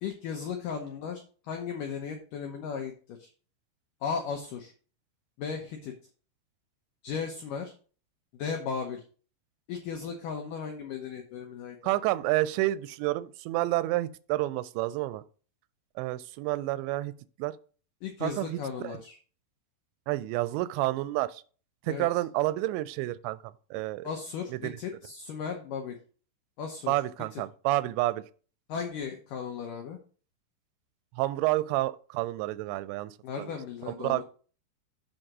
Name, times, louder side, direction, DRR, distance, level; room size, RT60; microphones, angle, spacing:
voice 1, 0.0-3.3 4.0-4.7 5.4-5.9 7.0-7.7 8.3-9.0 9.7-12.0 18.0-19.2 21.9-22.1 24.0-24.5 24.8-26.0 26.6-26.9 27.3-27.4 28.7-30.0 33.2-34.2, left 6 dB, 85° left, 1.9 m, -36 dB
voice 2, 11.8-15.2 16.0-17.1 17.4-17.6 18.2-18.6 18.8-19.0 20.1-21.4 21.8-23.4 23.7-24.1 24.6-24.8 26.9-28.2 31.2-33.5 33.9-34.2, right 17 dB, 90° right, 2.8 m, -29 dB
7.9 x 3.9 x 5.9 m
omnidirectional pair, 5.0 m